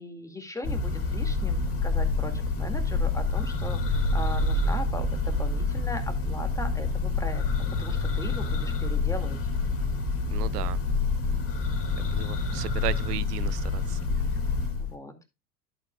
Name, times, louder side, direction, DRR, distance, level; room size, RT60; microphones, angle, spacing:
voice 1, 0.0-7.4 7.8-9.4 12.1-12.6 14.8-15.1, left 2 dB, 5° left, 2.1 m, -39 dB
Church bell, 0.6-14.9, left 3 dB, 30° left, 3.1 m, -27 dB
voice 2, 10.3-10.8 12.0-14.0, right 15 dB, 85° right, 0.6 m, -35 dB
11.5 x 8.5 x 2.3 m
hypercardioid pair, 95°, 46 cm